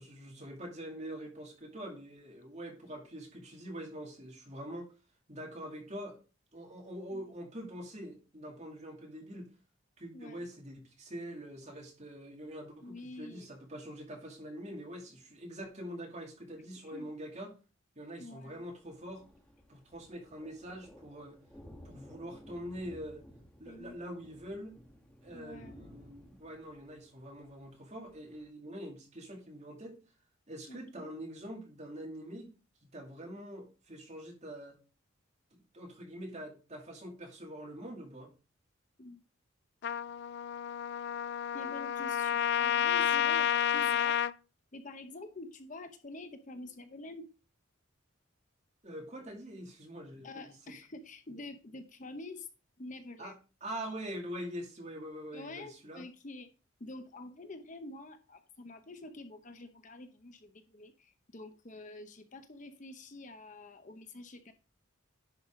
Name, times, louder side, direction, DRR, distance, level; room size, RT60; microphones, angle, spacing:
voice 1, 0.0-4.9 5.3-6.2 6.5-9.5 10.0-17.5 18.0-19.2 19.7-21.4 21.8-23.2 23.6-24.8 25.2-30.0 30.5-32.5 32.8-34.8 35.5-38.3 48.8-50.7 53.2-53.3 53.6-56.0, equal, 35° right, 1 dB, 2.6 m, -44 dB
voice 2, 10.1-10.4 12.8-13.5 16.8-17.1 18.2-18.6 23.6-24.0 25.3-25.8 30.7-31.2 39.0-39.2 41.5-44.2 44.7-47.3 50.2-52.5 52.8-53.4 55.3-56.5 56.8-64.5, left 2 dB, 40° left, 8 dB, 0.8 m, -47 dB
Thunder, 18.5-28.5, equal, 5° left, 1.3 m, -56 dB
Trumpet, 39.8-44.3, left 9 dB, 55° left, 0.3 m, -30 dB
10.5 x 5.5 x 3.8 m, 0.33 s
head